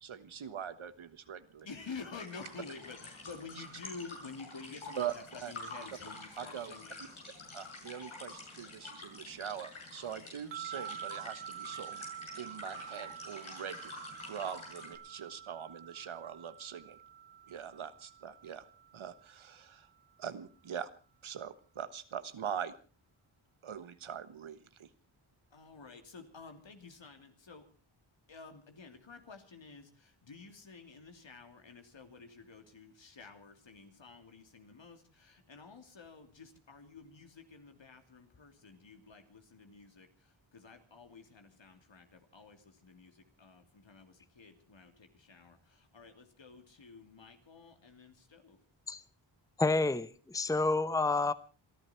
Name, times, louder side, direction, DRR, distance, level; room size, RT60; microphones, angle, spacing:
voice 1, 0.0-1.7 5.0-5.1 5.4-5.5 6.4-6.8 7.5-12.0 12.3-13.9 14.3-17.0 17.5-18.6 18.9-19.9 20.2-20.9 21.2-22.7 23.6-24.9, right 8 dB, 80° right, 13 dB, 1.4 m, -42 dB
voice 2, 1.6-7.0 25.5-27.7 28.3-48.6, left 4 dB, 65° left, 6 dB, 3.1 m, -51 dB
sound 1, 2.2-15.0, left 3 dB, 80° left, 6.9 m, -48 dB
sound 2, 10.5-19.8, right 10 dB, 65° right, 0.8 m, -48 dB
voice 3, 49.6-51.3, left 3 dB, 5° left, 15 dB, 0.9 m, -29 dB
27.5 x 12.0 x 4.4 m, 0.36 s
cardioid pair, 50°, 48 cm